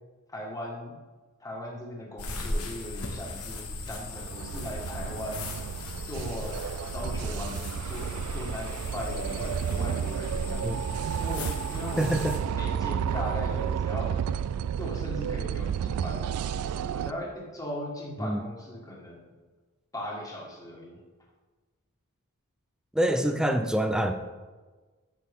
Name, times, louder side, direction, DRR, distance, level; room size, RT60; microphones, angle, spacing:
voice 1, 0.3-1.0 1.4-5.5 6.1-6.6 6.9-10.7 11.2-14.2 14.8-19.3 19.9-21.0, left 1 dB, 15° left, -2 dB, 1.7 m, -38 dB
sound 1, 2.2-12.4, left 2 dB, 90° left, 1.3 m, -37 dB
sound 2, 3.2-17.1, right 8 dB, 85° right, 0.3 m, -32 dB
voice 2, 12.0-12.4 18.2-18.4 22.9-24.1, right 1 dB, 5° right, 7 dB, 0.5 m, -26 dB
9.8 x 6.5 x 3.6 m, 1.3 s
head